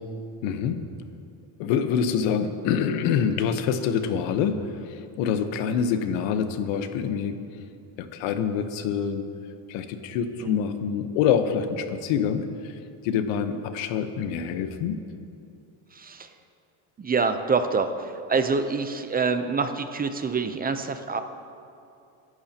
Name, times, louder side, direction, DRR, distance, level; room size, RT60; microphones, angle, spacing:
voice 1, 0.4-0.8 1.6-7.4 8.0-9.2 9.7-12.8 13.0-15.0, left 7 dB, 90° left, 8 dB, 1.1 m, -26 dB
voice 2, 15.9-16.3 17.0-21.2, right 4 dB, 20° right, 9 dB, 0.6 m, -26 dB
24.0 x 11.0 x 2.9 m, 2.6 s
cardioid pair, 130°, 44 cm